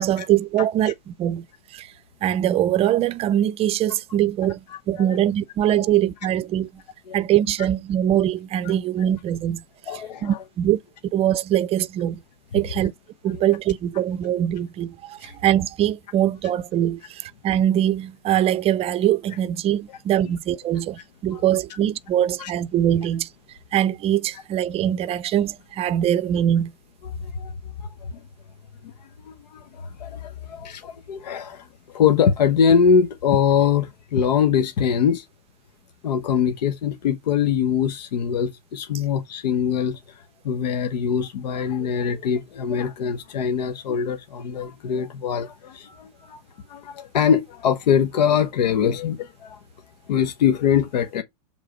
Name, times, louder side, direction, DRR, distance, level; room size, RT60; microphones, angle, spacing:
voice 1, 0.0-1.4 1.7-1.9 2.2-6.7 7.1-9.6 10.2-10.8 11.1-12.2 12.5-12.9 13.2-23.3 23.7-26.7, right 11 dB, 30° right, 0.5 m, -22 dB
voice 2, 4.7-5.1 7.1-7.2 8.6-8.7 9.9-10.4 15.2-15.3 21.3-21.4 22.4-22.5 27.0-27.5 27.8-27.9 28.8-35.2 36.0-46.4 46.7-49.6 50.1-51.2, left 7 dB, 80° left, 1.0 m, -23 dB
7.5 x 3.6 x 5.1 m
hypercardioid pair, 125°, 21 cm